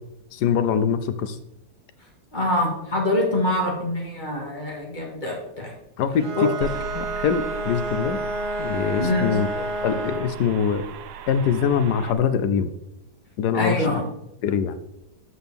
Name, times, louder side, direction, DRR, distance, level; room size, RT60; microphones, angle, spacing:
voice 1, 0.3-1.4 6.0-6.2 6.6-6.7 6.9-8.2 8.6-9.5 9.8-10.8 11.3-12.7 13.4-13.8 14.4-14.8, left 7 dB, 75° left, 11 dB, 1.3 m, -23 dB
voice 2, 2.3-5.7 6.4-6.5 9.0-9.3 13.5-14.1, left 1 dB, 25° left, -1 dB, 2.0 m, -25 dB
Bowed string instrument, 6.1-10.4, right 1 dB, 20° right, 1.0 m, -30 dB
sound 1, 6.6-12.1, right 6 dB, 70° right, 1.2 m, -37 dB
11.0 x 6.2 x 3.6 m, 0.85 s
omnidirectional pair, 1.8 m